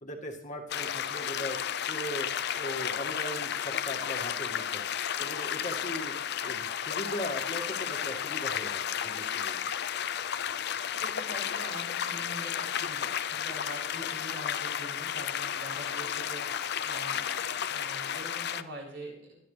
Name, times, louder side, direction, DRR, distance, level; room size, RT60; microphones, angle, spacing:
voice 1, 0.0-1.6 1.9-2.3 2.6-4.9 5.2-6.1 6.4-9.6, equal, 40° left, 1 dB, 2.0 m, -39 dB
sound 1, 0.7-18.6, left 9 dB, 55° left, 0.6 m, -33 dB
voice 2, 11.0-19.4, right 1 dB, 65° right, -3 dB, 7.2 m, -44 dB
24.0 x 11.0 x 3.4 m, 0.76 s
head